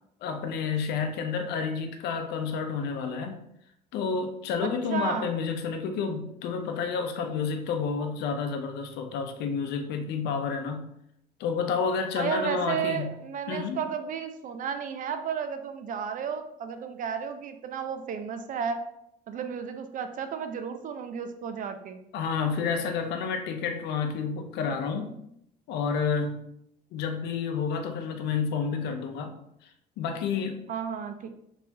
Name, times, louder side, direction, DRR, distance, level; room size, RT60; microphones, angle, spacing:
voice 1, 0.2-3.4 3.9-10.9 11.4-13.1 13.5-13.8 22.1-25.2 25.7-26.4 26.9-29.4 30.0-30.6, left 5 dB, 80° left, 6 dB, 0.6 m, -30 dB
voice 2, 4.6-5.3 12.2-18.8 19.3-22.0 30.7-31.4, right 7 dB, 50° right, 8 dB, 0.5 m, -33 dB
4.3 x 3.4 x 2.8 m, 0.77 s
cardioid pair, 110°, 17 cm